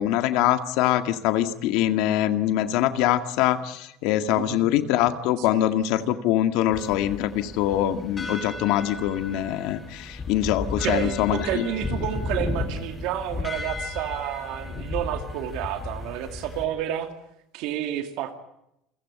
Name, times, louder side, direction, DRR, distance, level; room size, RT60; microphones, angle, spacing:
voice 1, 0.0-11.7, left 12 dB, 75° left, 9 dB, 1.9 m, -24 dB
sound 1, 6.7-16.6, left 3 dB, 25° left, 5.8 m, -34 dB
voice 2, 10.8-17.1 17.5-18.3, right 11 dB, 75° right, 7 dB, 2.4 m, -30 dB
29.0 x 16.0 x 8.3 m, 0.82 s
supercardioid pair, 110°, 0 cm